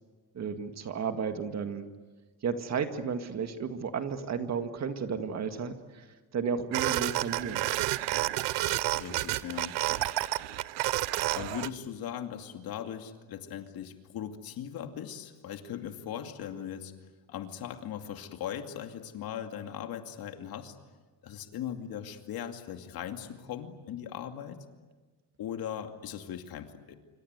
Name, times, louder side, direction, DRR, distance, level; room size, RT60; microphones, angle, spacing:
voice 1, 0.3-1.8 2.4-6.1 6.3-7.6, right 6 dB, 40° right, 7 dB, 2.0 m, -33 dB
sound 1, 6.7-11.7, right 17 dB, 85° right, 0.9 m, -30 dB
voice 2, 9.0-9.8 11.3-16.9 17.3-20.8 21.2-24.6 25.4-27.0, left 9 dB, 60° left, 5 dB, 2.5 m, -39 dB
26.5 x 25.5 x 8.1 m, 1.3 s
cardioid pair, 145°, 40 cm